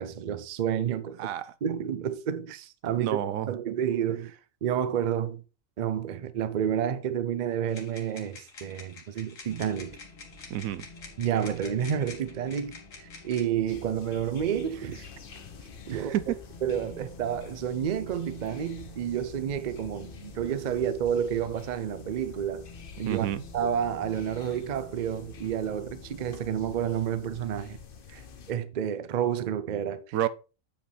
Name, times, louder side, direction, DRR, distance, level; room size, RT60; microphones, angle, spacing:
voice 1, 0.0-1.3 1.6-3.2 3.5-4.3 4.6-5.4 5.8-10.0 11.2-15.1 15.9-16.1 16.6-22.7 23.0-23.3 23.5-27.8 28.1-28.2 28.5-30.2, right 9 dB, 50° right, 0.5 m, -30 dB
voice 2, 1.2-1.5 3.0-3.5 10.5-10.9 15.9-16.2 23.1-23.4 30.1-30.3, right 12 dB, 80° right, 1.0 m, -29 dB
sound 1, 7.7-13.4, left 4 dB, 70° left, 1.9 m, -48 dB
sound 2, 9.4-27.6, left 3 dB, 30° left, 1.8 m, -51 dB
sound 3, 13.7-28.5, left 5 dB, 45° left, 0.9 m, -47 dB
8.6 x 5.1 x 3.3 m
omnidirectional pair, 1.4 m